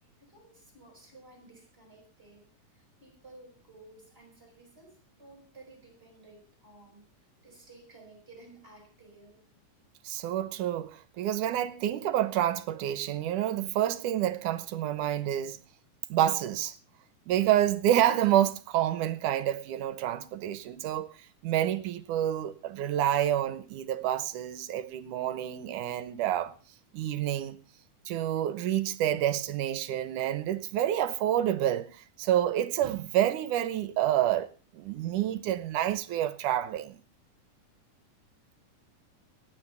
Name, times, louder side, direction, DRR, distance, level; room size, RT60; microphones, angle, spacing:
voice 1, 0.2-2.5 2.7-7.1 7.4-9.5, right 2 dB, 15° right, 6.8 m, -54 dB
voice 2, 10.0-15.6 16.1-16.7 17.3-21.1 21.4-26.5 26.9-27.6 28.1-37.0, right 12 dB, 80° right, 2.4 m, -28 dB
27.0 x 9.4 x 3.4 m
omnidirectional pair, 3.6 m